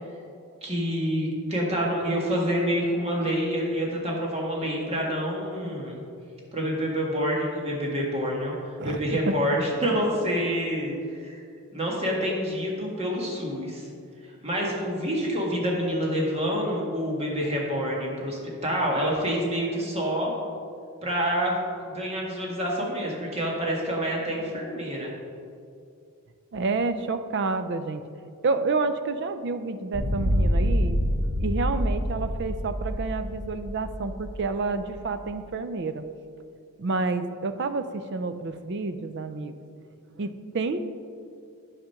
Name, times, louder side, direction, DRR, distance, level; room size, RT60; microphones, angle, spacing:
voice 1, 0.6-6.0 6.5-10.9 11.2-11.4 11.7-13.9 14.4-20.3 21.0-21.6 21.8-25.1, equal, 30° right, -2 dB, 1.6 m, -27 dB
voice 2, 26.5-28.0 28.4-31.0 31.4-36.0 36.8-39.5 40.1-40.9, right 3 dB, 50° right, 10 dB, 0.4 m, -29 dB
sound 1, 29.9-35.1, equal, 70° right, 1.7 m, -26 dB
8.7 x 5.1 x 5.7 m, 2.4 s
head